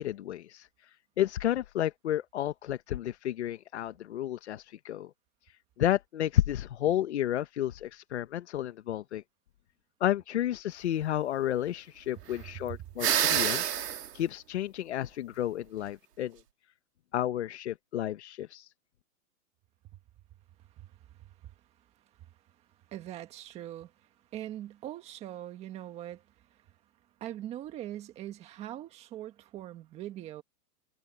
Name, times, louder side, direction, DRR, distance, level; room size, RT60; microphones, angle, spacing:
voice 1, 0.0-5.1 5.5-9.2 10.0-13.6 14.1-16.4 17.1-18.7, left 12 dB, 45° left, 1.2 m, -31 dB
voice 2, 12.4-12.8 20.8-21.5 22.9-23.9 24.3-26.7 27.2-30.4, right 12 dB, 15° right, 1.7 m, -42 dB
sound 1, 13.0-14.1, right 9 dB, 75° right, 2.1 m, -27 dB
hypercardioid pair, 170°, 47 cm